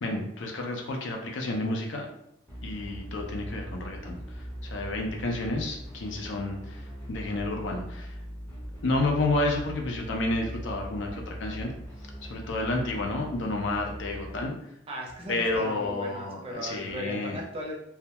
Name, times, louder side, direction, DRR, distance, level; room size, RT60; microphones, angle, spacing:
voice 1, 0.0-2.1 2.6-4.2 4.6-6.8 7.1-8.1 8.8-11.7 12.2-14.5 15.3-17.4, left 2 dB, 70° left, 1 dB, 0.5 m, -30 dB
sound 1, 2.5-14.5, equal, 15° left, 0.6 m, -40 dB
voice 2, 14.9-17.7, equal, 30° right, -2 dB, 0.5 m, -37 dB
2.2 x 2.0 x 2.8 m, 0.80 s
head